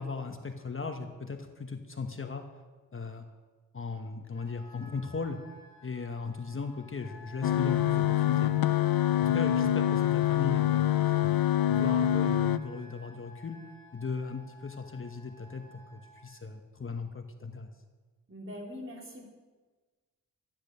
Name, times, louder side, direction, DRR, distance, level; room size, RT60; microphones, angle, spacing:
voice 1, 0.0-2.4 2.9-3.2 3.7-5.4 5.8-8.5 9.2-11.3 11.7-13.6 13.9-17.7, left 4 dB, 35° left, 6 dB, 1.1 m, -37 dB
Wind instrument woodwind instrument, 4.3-16.3, left 2 dB, 15° left, 4.5 m, -53 dB
sound 1, 7.4-12.6, left 12 dB, 85° left, 0.6 m, -25 dB
voice 2, 18.3-19.2, left 1 dB, 35° right, -1 dB, 3.4 m, -42 dB
13.0 x 10.5 x 6.6 m, 1.3 s
wide cardioid pair, 100°, 35 cm